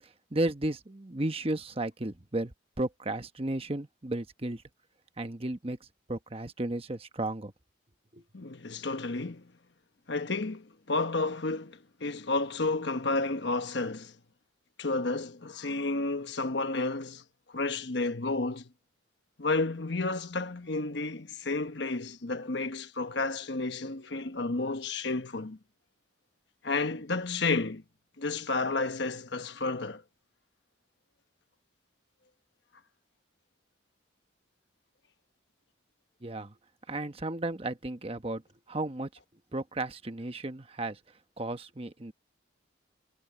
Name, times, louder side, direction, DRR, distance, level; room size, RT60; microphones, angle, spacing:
voice 1, 0.0-4.6 5.2-5.8 6.1-7.5 8.1-8.2 36.2-36.5 36.9-38.4 38.7-39.1 39.5-41.0 41.4-42.1, right 2 dB, 30° right, 1.1 m, -34 dB
voice 2, 8.3-9.5 10.1-14.2 14.8-17.2 17.5-18.7 19.4-25.6 26.6-27.8 28.2-30.0, left 3 dB, 65° left, 1.2 m, -31 dB
head